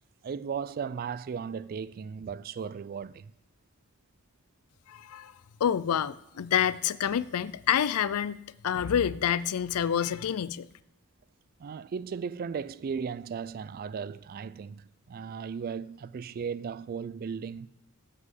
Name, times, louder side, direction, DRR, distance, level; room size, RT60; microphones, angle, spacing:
voice 1, 0.2-3.3 11.6-17.7, right 6 dB, 40° right, 0.3 m, -36 dB
voice 2, 4.9-5.3 5.6-10.7, left 9 dB, 75° left, 0.4 m, -28 dB
7.6 x 6.1 x 7.6 m
head